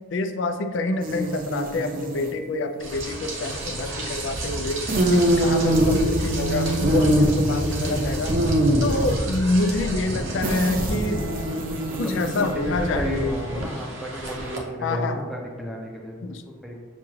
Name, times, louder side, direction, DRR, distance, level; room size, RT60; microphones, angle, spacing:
voice 1, 0.1-8.4 8.8-11.2 12.0-13.2 14.8-15.2 16.2-16.4, left 2 dB, 65° left, 8 dB, 0.4 m, -27 dB
sound 1, 1.0-2.3 4.9-9.2 10.4-12.7, right 1 dB, 45° right, 0.5 m, -23 dB
Rain, 2.8-14.6, right 1 dB, 75° right, 0.7 m, -30 dB
voice 2, 8.2-8.6 11.9-16.8, equal, ahead, -2 dB, 0.6 m, -32 dB
7.0 x 2.4 x 3.1 m, 1.5 s
head